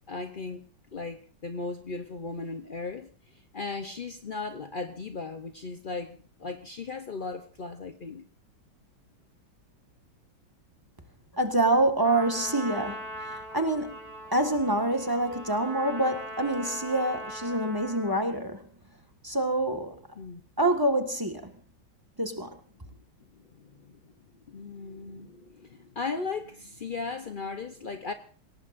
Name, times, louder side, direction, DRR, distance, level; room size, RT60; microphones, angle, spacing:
voice 1, 0.1-0.6 0.9-8.2 20.2-20.4 23.4-24.0 24.5-28.1, left 4 dB, 75° left, 7 dB, 0.4 m, -37 dB
voice 2, 11.3-14.0 14.3-18.6 19.2-20.0 20.6-21.5 22.2-22.5, right 1 dB, 10° right, 5 dB, 1.5 m, -26 dB
Trumpet, 12.0-18.3, right 1 dB, 45° right, 5.7 m, -40 dB
26.5 x 18.0 x 2.6 m, 0.40 s
omnidirectional pair, 2.2 m